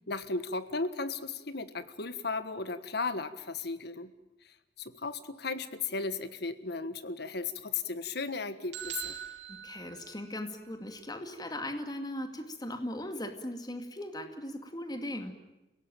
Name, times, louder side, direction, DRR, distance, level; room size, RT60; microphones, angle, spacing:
voice 1, 0.1-4.1 4.8-9.2, left 4 dB, 65° left, 12 dB, 1.5 m, -35 dB
sound 1, 8.7-10.7, right 10 dB, 75° right, 2.5 m, -42 dB
voice 2, 9.5-15.3, left 1 dB, 25° left, 6 dB, 2.2 m, -38 dB
29.5 x 17.5 x 9.1 m, 1.0 s
head